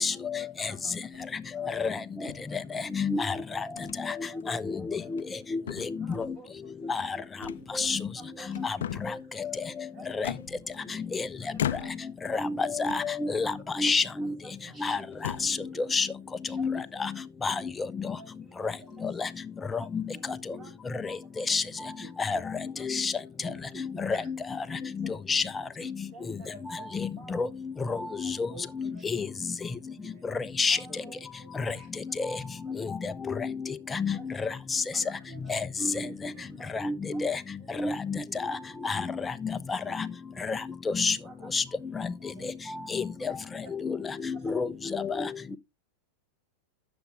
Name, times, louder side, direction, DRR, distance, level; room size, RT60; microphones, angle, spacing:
voice 1, 0.0-1.2 1.5-2.9 3.2-5.7 6.0-7.3 7.5-11.9 14.1-16.2 16.5-17.7 18.1-19.4 19.7-22.0 22.3-23.7 24.1-25.2 25.8-28.5 28.8-30.4 30.7-32.4 32.6-32.8 34.1-35.5 36.1-36.8 37.1-37.7 40.8-41.7 41.9-42.1 42.4-42.5 43.3-43.4 44.3-44.5 44.9-45.0, right 3 dB, 35° right, 7.1 m, -55 dB
sound 1, 1.1-1.5 2.3-3.0 3.8-4.0 4.4-4.5 5.0-5.4 5.7-6.4 7.4-8.2 8.5-9.3 10.2-11.1 11.5-12.2 12.8-13.5 13.8-14.0 14.7-14.8 15.1-15.6, left 10 dB, 85° left, 0.4 m, -37 dB
voice 2, 1.5-1.9 2.6-2.7 4.2-4.6 4.9-5.1 8.2-8.4 8.7-8.9 10.8-11.0 11.4-11.6 13.3-13.4 14.6-15.0 15.2-15.8 16.5-16.6 18.6-18.7 20.1-20.2 20.5-20.7 21.7-22.7 23.4-24.0 25.8-25.9 28.4-29.0 29.9-30.4 30.9-31.0 32.7-32.8 35.0-35.4 35.8-36.1 36.3-36.5 37.7-37.8 38.3-38.7 39.8-40.0 40.3-40.5 42.3-42.5 42.9-43.7, right 1 dB, 10° right, 1.9 m, -50 dB
voice 3, 3.0-3.3 4.5-4.6 6.9-7.0 7.8-8.0 12.3-13.5 13.8-14.3 14.8-15.0 15.4-15.6 15.9-16.1 16.6-16.8 17.4-17.5 19.9-20.0 21.5-21.6 22.3-22.4 22.9-23.1 25.3-25.4 27.4-27.5 28.2-28.3 28.8-28.9 30.6-30.8 34.0-34.1 35.5-36.1 36.8-37.3 37.8-37.9 38.8-39.0 41.0-41.1 41.5-41.6 42.9-43.0 44.3-44.7 45.2-45.3, left 4 dB, 15° left, 0.7 m, -27 dB
9.7 x 7.0 x 3.4 m
hypercardioid pair, 115°, 0 cm